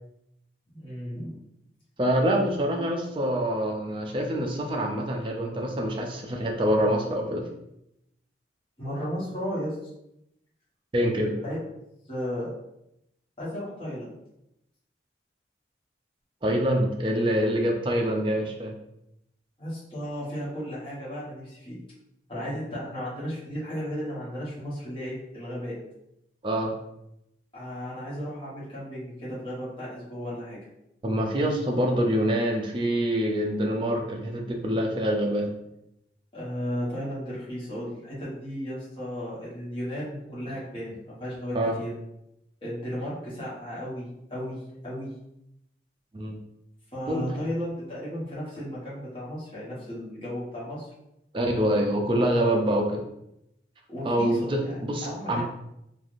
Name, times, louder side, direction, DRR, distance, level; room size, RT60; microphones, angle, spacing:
voice 1, 0.7-1.4 8.8-9.9 11.4-11.6 12.1-12.5 13.4-14.1 19.6-21.8 22.3-25.8 27.5-30.6 36.3-41.9 42.6-45.1 46.9-50.9 53.9-55.4, equal, 30° left, -9 dB, 1.1 m, -34 dB
voice 2, 2.0-7.4 10.9-11.3 16.4-18.7 26.4-26.7 31.0-35.5 41.5-41.8 46.1-46.4 47.1-47.3 51.3-53.0 54.0-55.4, equal, 30° right, 1 dB, 0.4 m, -25 dB
3.2 x 2.4 x 2.5 m, 0.83 s
head